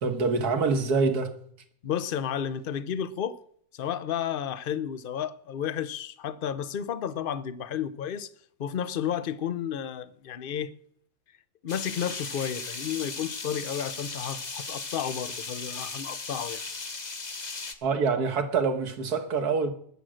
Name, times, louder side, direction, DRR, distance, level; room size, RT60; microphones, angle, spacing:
voice 1, 0.0-1.3 17.8-19.7, right 4 dB, 80° right, 1.9 m, -25 dB
voice 2, 1.8-3.4 3.7-8.3 8.6-10.7 11.6-16.6, left 9 dB, 50° left, 0.7 m, -32 dB
sound 1, 11.7-17.7, left 4 dB, 30° left, 1.1 m, -37 dB
20.0 x 7.7 x 6.4 m
omnidirectional pair, 1.7 m